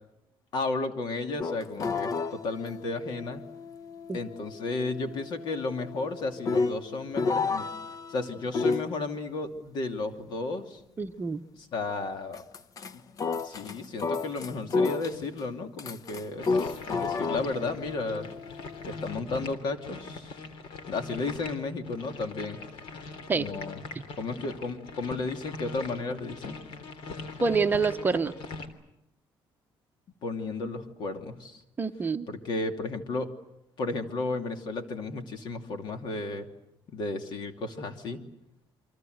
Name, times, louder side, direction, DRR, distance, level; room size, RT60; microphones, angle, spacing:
voice 1, 0.5-3.4 4.1-7.7 8.1-10.8 11.5-12.4 12.9-13.0 13.4-18.2 18.8-20.4 20.9-22.6 23.3-23.8 24.2-26.6 30.2-31.6 32.3-33.3 33.8-36.5 36.9-38.2, left 3 dB, 60° left, 6 dB, 2.8 m, -33 dB
sound 1, 1.4-8.9 12.3-12.9 13.2-15.4 15.8-19.1, left 4 dB, 45° left, 0.9 m, -32 dB
voice 2, 11.0-11.4 23.3-23.5 27.4-28.3 31.8-32.3, right 4 dB, 20° right, 8 dB, 0.9 m, -26 dB
sound 2, 16.4-28.7, left 3 dB, 80° left, 3.3 m, -42 dB
29.0 x 24.0 x 8.0 m, 0.85 s
cardioid pair, 145°, 9 cm